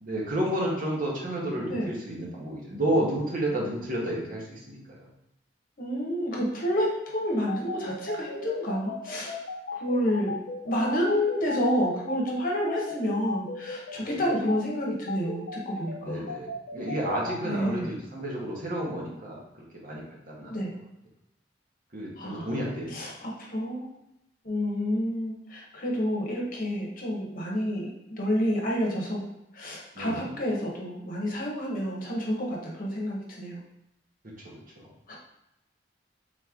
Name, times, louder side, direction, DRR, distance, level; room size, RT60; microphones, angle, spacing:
voice 1, 0.0-5.1 14.2-14.3 16.0-20.6 21.9-22.9 29.9-30.3 34.2-34.5, right 1 dB, 50° right, -3 dB, 1.3 m, -31 dB
voice 2, 5.8-9.4 9.8-10.3 10.6-16.3 17.4-17.9 20.5-20.7 22.2-22.5 22.9-23.1 23.5-23.9 24.4-29.2 29.5-33.6 35.1-35.2, equal, 50° left, -2 dB, 1.1 m, -29 dB
sound 1, 7.5-17.4, left 3 dB, 75° left, 0.7 m, -36 dB
3.9 x 3.2 x 3.7 m, 0.85 s
head